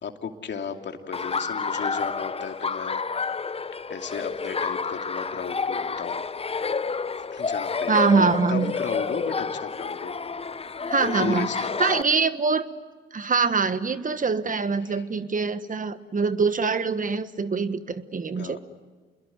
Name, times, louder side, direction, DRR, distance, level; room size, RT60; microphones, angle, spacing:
voice 1, 0.0-3.0 3.9-6.2 7.3-10.1 11.2-11.9 14.8-15.0 18.4-18.6, left 6 dB, 60° left, 4 dB, 2.7 m, -35 dB
Laughter, 1.1-12.0, left 5 dB, 30° left, 0.8 m, -29 dB
voice 2, 7.9-8.7 10.9-11.5 11.8-12.6 13.1-18.6, right 4 dB, 40° right, 12 dB, 1.5 m, -24 dB
28.0 x 21.5 x 9.3 m, 1.4 s
supercardioid pair, 55°, 21 cm